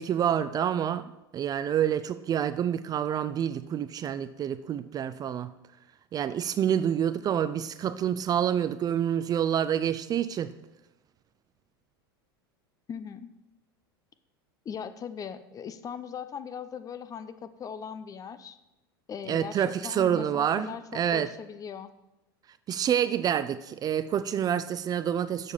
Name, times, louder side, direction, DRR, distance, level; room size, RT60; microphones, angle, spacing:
voice 1, 0.0-5.5 6.1-10.5 19.3-20.7 20.9-21.3 22.7-25.5, right 9 dB, 30° right, 0.4 m, -27 dB
voice 2, 12.9-13.3 14.6-18.6 19.1-21.9, left 7 dB, 30° left, 0.6 m, -39 dB
6.9 x 6.6 x 5.6 m
hypercardioid pair, 90°, 13 cm